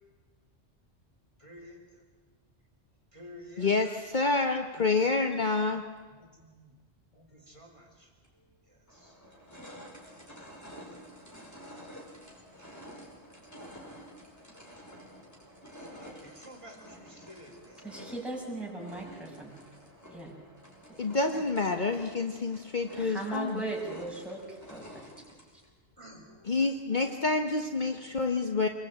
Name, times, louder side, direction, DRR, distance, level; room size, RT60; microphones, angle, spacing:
voice 1, 1.4-2.1 3.1-4.0 5.0-5.2 6.1-6.8 7.1-8.1 8.7-9.2 10.7-11.0 15.9-17.9 25.6-26.7 26.9-27.4 28.0-28.4, equal, 25° right, 1 dB, 3.7 m, -52 dB
voice 2, 3.6-5.9 21.0-23.6 26.5-28.7, left 3 dB, 45° left, 5 dB, 1.3 m, -28 dB
sound 1, 8.2-8.3 8.9-25.7, equal, 15° left, 5.6 m, -50 dB
voice 3, 17.8-19.6 20.1-20.4 21.3-21.4 22.9-25.0, right 2 dB, ahead, -3 dB, 6.5 m, -38 dB
26.5 x 22.0 x 8.9 m, 1.4 s
omnidirectional pair, 1.2 m